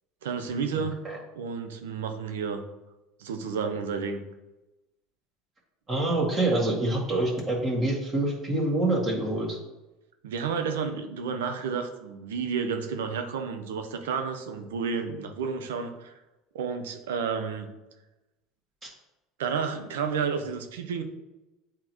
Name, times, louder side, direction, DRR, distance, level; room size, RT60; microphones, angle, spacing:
voice 1, 0.2-1.0 1.3-2.6 3.2-4.2 10.2-16.1 16.5-17.7 19.4-21.0, right 6 dB, 85° right, 6 dB, 0.7 m, -31 dB
voice 2, 5.9-9.6, right 2 dB, 30° right, -4 dB, 2.0 m, -26 dB
8.9 x 3.7 x 3.0 m, 1.0 s
hypercardioid pair, 85°, 0 cm